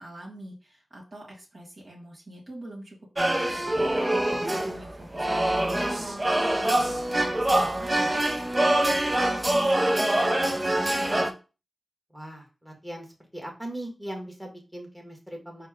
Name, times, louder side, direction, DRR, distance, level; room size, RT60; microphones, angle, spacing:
voice 1, 0.0-3.0 3.2-11.4, right 1 dB, 50° right, -4 dB, 1.7 m, -42 dB
sound 1, 3.2-11.3, right 1 dB, 30° right, 0.6 m, -25 dB
voice 2, 12.1-13.1 13.3-15.7, right 1 dB, 10° right, 1 dB, 1.5 m, -39 dB
4.3 x 2.2 x 3.6 m, 0.32 s
cardioid pair, 50°, 0 cm